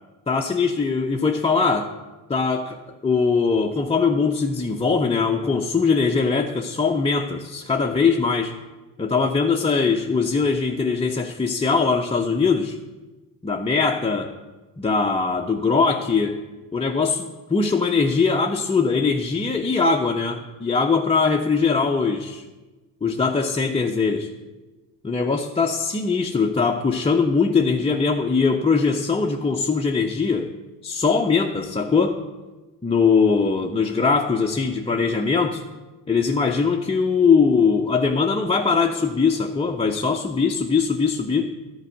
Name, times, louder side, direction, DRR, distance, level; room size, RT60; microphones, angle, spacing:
voice 1, 0.3-1.9 2.3-2.8 3.0-8.5 9.0-12.8 13.4-14.3 14.8-16.4 16.7-22.4 23.0-24.3 25.0-30.5 30.8-32.2 32.8-35.6 36.1-41.5, left 4 dB, 10° left, 0 dB, 0.6 m, -21 dB
11.0 x 4.7 x 7.6 m, 1.2 s
hypercardioid pair, 60°, 48 cm